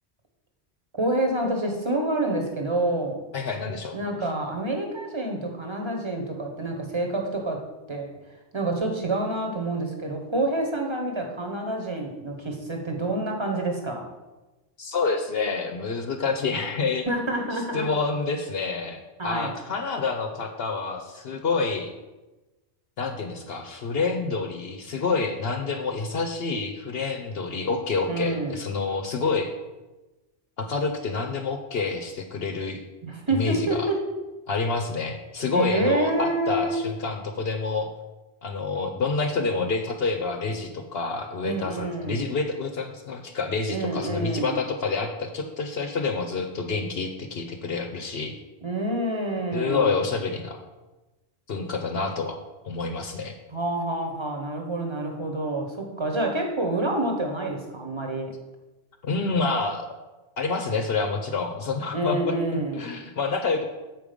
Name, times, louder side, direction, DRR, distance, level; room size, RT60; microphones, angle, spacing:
voice 1, 1.0-3.2 3.9-7.6 7.9-8.1 8.5-14.0 17.1-17.9 19.2-19.6 28.1-28.6 33.0-34.0 35.5-36.9 41.4-42.3 43.7-44.6 48.6-50.0 53.5-58.3 61.9-62.9, right 2 dB, 25° right, 2 dB, 1.1 m, -27 dB
voice 2, 3.3-4.0 14.8-17.1 17.7-21.9 23.0-29.5 30.6-32.8 33.3-33.9 34.5-37.9 38.4-48.4 49.5-50.6 51.5-52.4 52.6-53.3 59.0-59.9 60.4-63.6, left 4 dB, 65° left, 5 dB, 0.9 m, -28 dB
7.7 x 5.0 x 5.2 m, 1.1 s
omnidirectional pair, 1.2 m